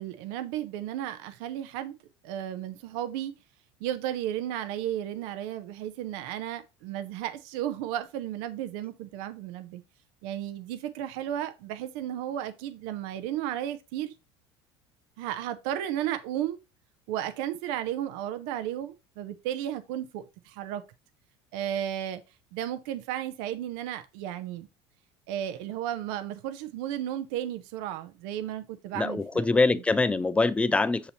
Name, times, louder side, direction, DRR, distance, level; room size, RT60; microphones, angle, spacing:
voice 1, 0.0-1.9 2.2-3.3 3.8-9.8 10.2-14.1 15.2-16.6 17.1-20.8 21.5-22.2 22.5-24.7 25.3-29.5 29.7-29.8, right 11 dB, 75° right, 0.5 m, -34 dB
voice 2, 29.0-31.1, left 3 dB, 10° left, 0.3 m, -24 dB
6.7 x 2.8 x 2.8 m
supercardioid pair, 85°, 13 cm